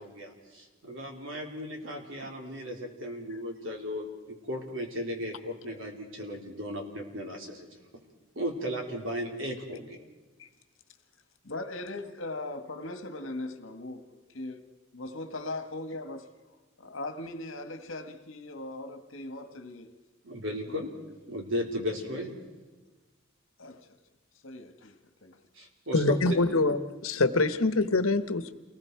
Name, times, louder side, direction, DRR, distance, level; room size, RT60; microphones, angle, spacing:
voice 1, 0.0-7.7 8.4-10.0 20.2-20.9 21.3-22.4 25.6-26.0 26.3-26.4, equal, 65° right, 3.7 m, -36 dB
voice 2, 11.4-14.6 14.9-16.2 16.8-19.9 20.7-20.8 23.6-23.9 24.4-25.4, left 2 dB, 70° left, 1.7 m, -39 dB
voice 3, 25.9-28.5, left 2 dB, 90° left, 1.2 m, -25 dB
28.5 x 20.0 x 4.7 m
head